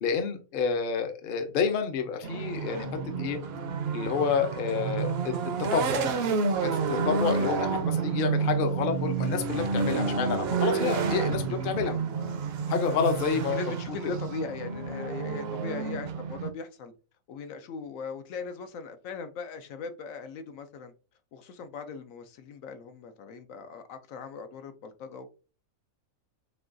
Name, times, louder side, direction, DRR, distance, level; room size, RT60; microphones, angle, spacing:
voice 1, 0.0-3.4 3.9-6.0 6.6-11.9 12.7-13.6 14.1-14.2, left 6 dB, 50° left, 0.7 m, -29 dB
sound 1, 2.2-16.5, right 5 dB, 60° right, 0.7 m, -30 dB
voice 2, 7.3-7.8 11.0-12.7 13.5-16.9 17.3-20.9 21.3-25.3, left 5 dB, 80° left, 1.0 m, -40 dB
6.6 x 2.3 x 2.5 m
omnidirectional pair, 1.4 m